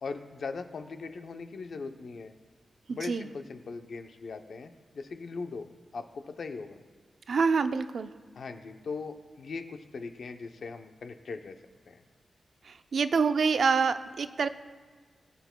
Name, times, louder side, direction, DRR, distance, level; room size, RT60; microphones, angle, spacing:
voice 1, 0.0-2.3 2.9-6.8 8.4-11.6 11.9-12.0, left 4 dB, 60° left, 7 dB, 0.6 m, -40 dB
voice 2, 2.9-3.3 7.3-8.1 12.7-14.5, right 5 dB, 60° right, 10 dB, 0.4 m, -26 dB
20.5 x 8.0 x 2.2 m, 1.5 s
wide cardioid pair, 170°, 0 cm